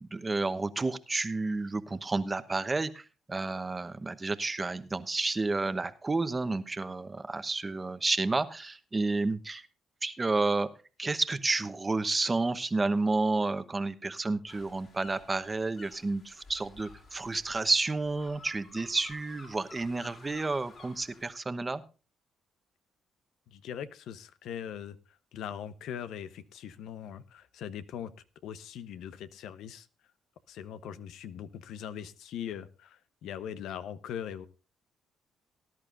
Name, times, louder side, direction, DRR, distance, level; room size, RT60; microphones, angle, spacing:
voice 1, 0.0-9.7 10.0-10.7 11.0-21.8, right 3 dB, 25° right, 12 dB, 1.0 m, -30 dB
sound 1, 14.5-21.3, left 4 dB, 55° left, 5.1 m, -53 dB
voice 2, 23.5-28.1 28.4-29.9 30.5-34.5, left 9 dB, 80° left, 14 dB, 0.8 m, -41 dB
19.0 x 11.0 x 2.5 m, 0.33 s
cardioid pair, 90°, 0 cm